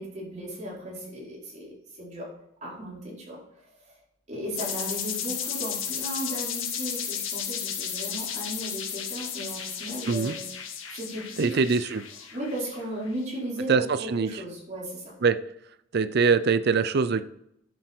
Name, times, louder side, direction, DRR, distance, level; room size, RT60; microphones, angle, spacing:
voice 1, 0.0-2.3 2.6-4.0 4.3-10.4 10.9-11.5 12.3-15.1, right 1 dB, 35° right, -5 dB, 4.7 m, -36 dB
sound 1, 4.5-13.1, left 8 dB, 85° left, 1.8 m, -34 dB
voice 2, 11.4-12.0 13.7-13.8 14.1-14.3 15.2-15.4 15.9-17.3, right 5 dB, 55° right, 13 dB, 0.5 m, -22 dB
10.5 x 7.9 x 4.4 m, 0.75 s
head